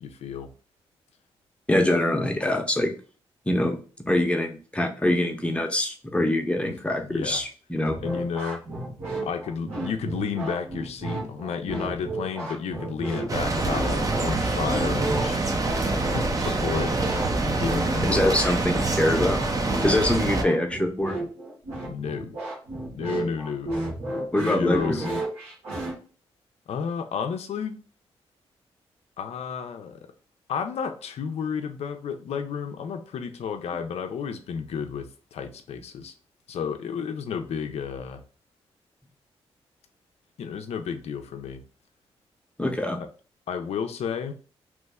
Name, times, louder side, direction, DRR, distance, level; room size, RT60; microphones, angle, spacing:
voice 1, 0.0-0.5 7.1-7.4 8.0-8.6 9.2-15.4 16.1-16.9 17.4-18.4 21.8-22.4 22.9-23.7 24.4-25.2 26.7-27.8 29.2-30.0 30.5-36.1 36.5-38.2 40.4-41.6 43.5-44.3, left 6 dB, 75° left, 0.5 m, -31 dB
voice 2, 1.7-2.9 3.5-3.8 4.1-8.0 18.1-19.4 19.8-21.2 24.3-25.1 42.6-43.0, left 1 dB, 10° left, 0.7 m, -24 dB
sound 1, 7.8-25.9, right 2 dB, 85° right, 1.3 m, -33 dB
sound 2, 13.3-20.4, right 2 dB, 35° right, 0.6 m, -26 dB
3.1 x 2.1 x 3.4 m
cardioid pair, 60°, 11 cm